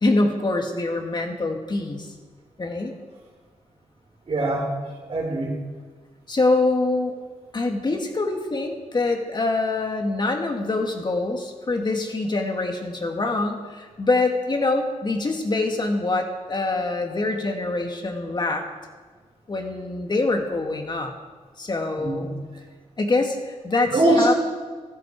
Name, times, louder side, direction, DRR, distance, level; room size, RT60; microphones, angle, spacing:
voice 1, 0.0-2.1 2.6-2.9 6.3-7.2 7.5-18.7 19.5-21.1 21.6-22.3 23.0-24.3, left 2 dB, 35° left, 3 dB, 2.0 m, -24 dB
voice 2, 4.3-4.7 5.1-5.6 22.0-22.3 23.9-24.3, right 2 dB, 55° right, -1 dB, 4.4 m, -21 dB
14.5 x 13.0 x 4.8 m, 1.4 s
cardioid pair, 90°, 12 cm